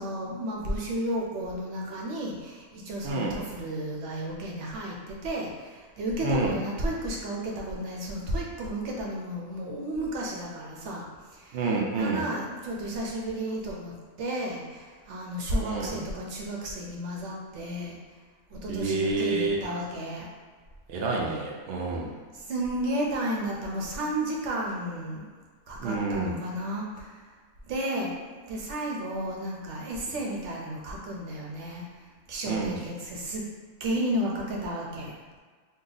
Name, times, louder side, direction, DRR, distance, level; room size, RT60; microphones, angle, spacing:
voice 1, 0.0-11.1 11.3-18.0 18.5-20.3 22.3-25.2 25.7-27.2 27.6-31.8 32.3-33.4 33.8-35.1, right 1 dB, 60° right, -2 dB, 0.8 m, -33 dB
voice 2, 3.0-3.4 6.2-6.5 11.5-12.2 15.6-16.0 18.7-19.6 20.9-22.1 25.8-26.3 32.5-32.8, right 3 dB, 85° right, -2 dB, 0.5 m, -28 dB
2.7 x 2.3 x 3.8 m, 1.5 s
omnidirectional pair, 1.6 m